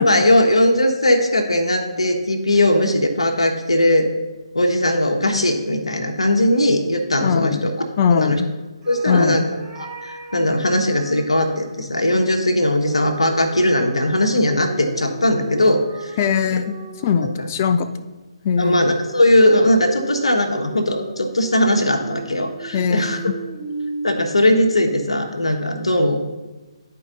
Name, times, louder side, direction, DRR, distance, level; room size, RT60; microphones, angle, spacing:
voice 1, 0.0-4.1 4.5-7.7 8.1-8.4 8.9-9.4 9.8-16.2 17.2-17.5 18.6-23.2 24.0-26.2, left 1 dB, 70° left, 4 dB, 1.2 m, -19 dB
voice 2, 7.2-8.5 9.1-9.5 16.2-16.7 17.0-17.9 18.4-18.8 22.7-23.3, left 6 dB, 30° left, 10 dB, 0.5 m, -20 dB
sound 1, 8.8-11.8 12.8-17.6 19.0-25.1, right 3 dB, 15° right, 2.1 m, -37 dB
11.0 x 4.7 x 3.9 m, 1.2 s
figure-of-eight pair, 140°, 3 cm